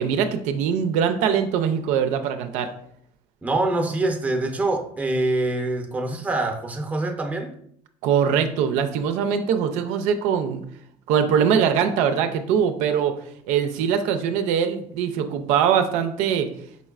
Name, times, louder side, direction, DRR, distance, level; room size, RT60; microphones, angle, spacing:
voice 1, 0.0-2.7 8.0-10.6 11.1-13.1 13.5-16.5, right 7 dB, 85° right, 7 dB, 0.4 m, -22 dB
voice 2, 3.4-7.5, right 2 dB, 10° right, 4 dB, 0.6 m, -25 dB
5.1 x 3.1 x 2.3 m, 0.69 s
cardioid pair, 100°, 12 cm